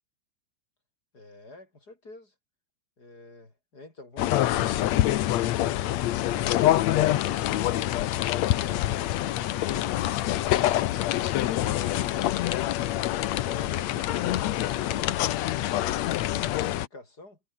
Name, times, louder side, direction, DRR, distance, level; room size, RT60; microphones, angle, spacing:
voice 1, 1.1-2.3 3.0-4.9 16.6-17.4, left 2 dB, 30° left, 5.3 m, -48 dB
sound 1, 4.2-16.9, left 14 dB, 70° left, 2.0 m, -26 dB
omnidirectional pair, 3.7 m